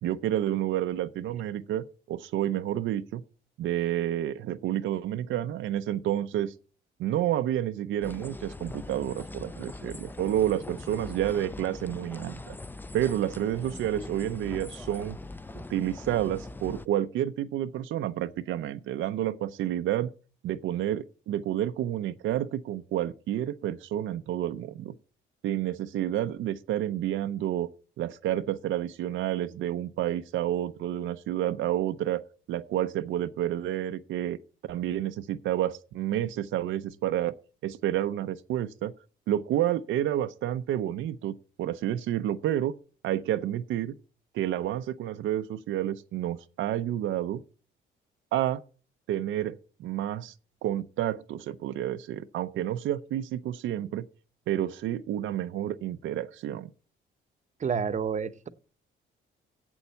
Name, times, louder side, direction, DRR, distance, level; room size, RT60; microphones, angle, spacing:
voice 1, 0.0-3.2 3.6-6.5 7.0-12.5 12.9-15.2 15.5-20.1 20.4-24.9 25.4-27.7 28.0-32.2 32.5-34.4 34.6-37.3 37.6-38.9 39.3-41.3 41.6-42.7 43.0-43.9 44.3-47.4 48.3-48.6 49.1-50.3 50.6-54.0 54.5-56.7, right 12 dB, 80° right, 0.6 m, -29 dB
sound 1, 8.0-16.9, left 2 dB, 10° left, 0.5 m, -41 dB
voice 2, 57.6-58.5, right 6 dB, 40° right, 0.8 m, -29 dB
7.9 x 7.1 x 8.1 m
cardioid pair, 90°, 20 cm